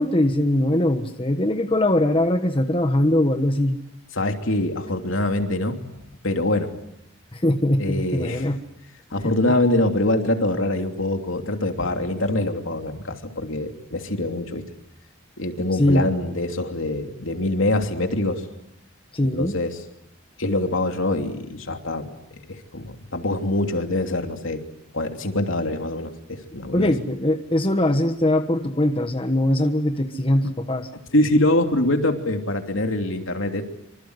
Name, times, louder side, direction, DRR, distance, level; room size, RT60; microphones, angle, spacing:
voice 1, 0.0-3.8 7.3-8.6 15.8-16.1 19.1-19.5 26.7-30.9, left 1 dB, 25° left, 7 dB, 1.3 m, -21 dB
voice 2, 4.1-5.8 6.2-6.7 7.8-8.5 9.1-14.6 15.4-18.5 19.2-19.8 20.4-24.6 24.9-26.9 30.9-33.6, left 1 dB, 70° left, 5 dB, 3.0 m, -24 dB
26.5 x 26.0 x 8.1 m, 0.79 s
head